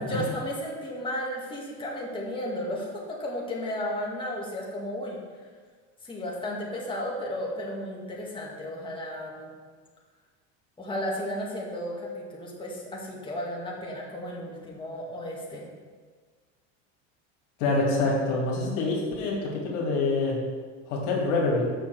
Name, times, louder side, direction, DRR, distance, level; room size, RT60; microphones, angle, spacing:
voice 1, 0.0-5.2 6.0-9.5 10.8-15.6, left 1 dB, 15° left, -4 dB, 2.0 m, -34 dB
voice 2, 17.6-20.4 20.9-21.6, left 3 dB, 80° left, -2 dB, 2.5 m, -26 dB
6.3 x 5.9 x 6.2 m, 1.5 s
supercardioid pair, 100°, 37 cm